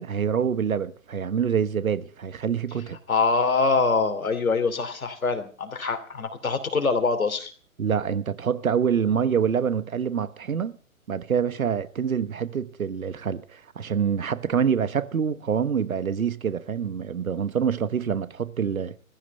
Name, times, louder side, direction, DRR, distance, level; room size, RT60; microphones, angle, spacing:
voice 1, 0.0-3.0 7.8-10.7 11.1-18.9, right 7 dB, 75° right, 1.2 m, -26 dB
voice 2, 3.1-7.5, left 4 dB, 75° left, 3.0 m, -24 dB
15.5 x 15.0 x 5.4 m
figure-of-eight pair, 130°, 42 cm